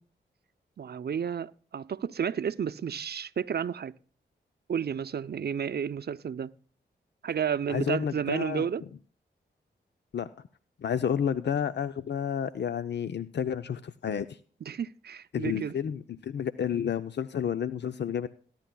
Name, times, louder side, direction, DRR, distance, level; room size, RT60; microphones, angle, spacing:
voice 1, 0.8-3.9 4.7-6.5 7.2-8.8 14.6-15.8, right 7 dB, 55° right, 0.6 m, -31 dB
voice 2, 7.7-8.7 10.1-10.3 10.8-14.4 15.3-18.3, left 8 dB, 65° left, 0.6 m, -30 dB
19.5 x 10.5 x 2.3 m
cardioid pair, 50°, 19 cm